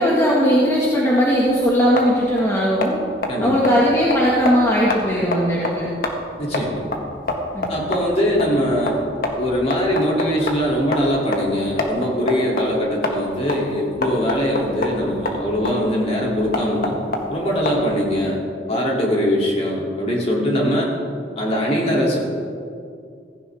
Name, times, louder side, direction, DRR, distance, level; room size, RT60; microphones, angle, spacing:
voice 1, 0.0-2.9 3.4-5.9 7.5-7.9, equal, 15° left, -6 dB, 1.7 m, -18 dB
sound 1, 1.3-18.1, left 2 dB, 55° left, 1.6 m, -28 dB
voice 2, 6.4-6.8 7.7-9.0 9.4-17.0 17.3-18.4 18.7-20.9 21.4-22.2, equal, 35° left, -3 dB, 3.0 m, -21 dB
16.0 x 15.5 x 3.6 m, 2.3 s
head